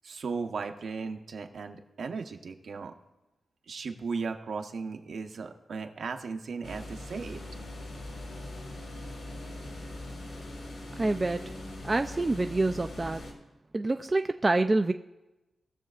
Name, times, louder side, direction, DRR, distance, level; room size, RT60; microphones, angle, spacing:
voice 1, 0.0-2.9 3.7-7.4, right 4 dB, 65° right, 5 dB, 0.8 m, -36 dB
sound 1, 6.6-13.3, left 1 dB, 65° left, 2.0 m, -41 dB
voice 2, 11.0-11.4 11.8-13.2 13.7-14.9, right 2 dB, 25° right, 7 dB, 0.3 m, -26 dB
19.5 x 6.9 x 2.4 m, 1.0 s
wide cardioid pair, 115°, 0 cm